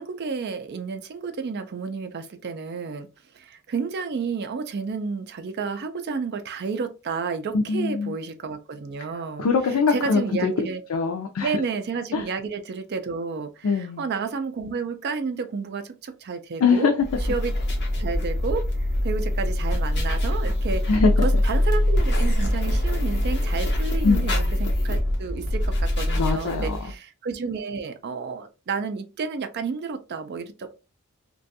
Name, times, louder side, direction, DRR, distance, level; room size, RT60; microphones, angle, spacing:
voice 1, 0.0-3.1 3.3-9.5 9.9-10.8 11.4-16.9 17.3-17.5 18.0-18.6 19.0-20.8 21.2-30.7, right 5 dB, 50° right, 0.4 m, -31 dB
voice 2, 7.5-8.1 9.4-11.5 12.1-12.2 13.6-14.0 16.6-16.9 20.9-21.1 24.0-24.5 26.2-26.8, left 4 dB, 85° left, 0.4 m, -22 dB
sound 1, 17.0-26.9, left 1 dB, 50° left, 0.8 m, -23 dB
2.4 x 2.2 x 2.6 m
head